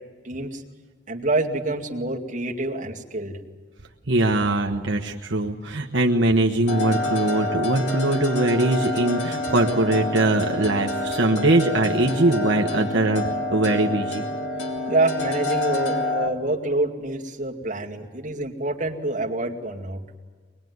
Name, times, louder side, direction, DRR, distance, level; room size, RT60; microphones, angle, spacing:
voice 1, 0.2-0.6 1.1-3.4 14.9-20.0, right 2 dB, 45° right, -1 dB, 2.2 m, -26 dB
voice 2, 4.1-14.2, right 2 dB, 75° right, 2 dB, 1.2 m, -21 dB
sound 1, 6.7-16.3, left 1 dB, 65° left, 2.5 m, -28 dB
24.0 x 21.0 x 9.5 m, 1.5 s
head